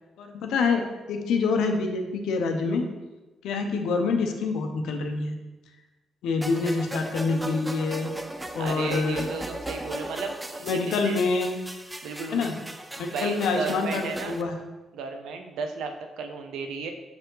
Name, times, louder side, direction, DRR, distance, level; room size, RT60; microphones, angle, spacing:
voice 1, 0.2-2.9 3.4-5.3 6.2-8.1 8.5-9.3 10.6-11.6 12.3-12.6 13.0-14.6, left 4 dB, 80° left, 5 dB, 0.7 m, -26 dB
sound 1, 6.4-14.4, right 1 dB, 10° right, 0.4 m, -37 dB
voice 2, 8.6-11.2 12.0-12.5 13.1-14.4 14.9-16.9, right 4 dB, 85° right, 5 dB, 0.7 m, -34 dB
5.7 x 4.6 x 3.9 m, 1.1 s
cardioid pair, 90°, 0 cm